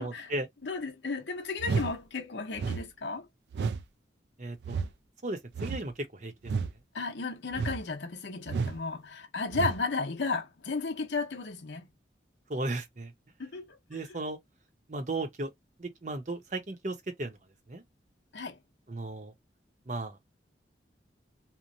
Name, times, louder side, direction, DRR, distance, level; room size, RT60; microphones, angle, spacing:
voice 1, 0.0-0.5 4.4-4.8 5.2-5.9 6.2-6.3 12.5-13.1 13.9-14.4 14.9-15.5 15.8-17.4 17.7-17.8 18.9-19.3 19.9-20.2, right 2 dB, 40° right, 0.7 m, -35 dB
voice 2, 0.6-3.3 6.9-11.9 13.4-14.2 18.3-18.6, left 4 dB, 75° left, 0.7 m, -34 dB
sound 1, 1.6-1.9 2.5-2.8 3.5-3.8 4.6-4.9 5.5-5.9 6.4-6.7 7.5-7.8 8.5-8.8 9.5-9.8, right 5 dB, 70° right, 0.4 m, -31 dB
3.0 x 2.1 x 2.6 m
head